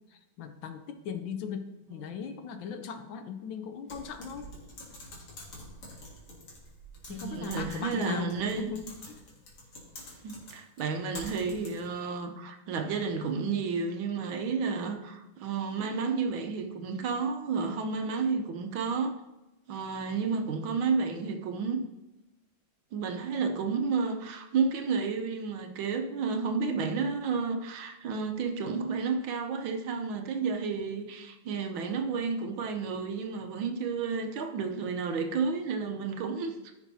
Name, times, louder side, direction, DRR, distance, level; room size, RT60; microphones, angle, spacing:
voice 1, 0.1-4.5 7.1-9.2, left 7 dB, 70° left, 8 dB, 1.3 m, -38 dB
Typing, 3.9-12.0, left 1 dB, 90° left, 2.8 m, -47 dB
voice 2, 7.1-8.7 10.2-19.2 19.7-21.8 22.9-36.5, right 5 dB, 70° right, 4 dB, 1.5 m, -31 dB
14.0 x 6.1 x 2.7 m, 1.0 s
omnidirectional pair, 2.3 m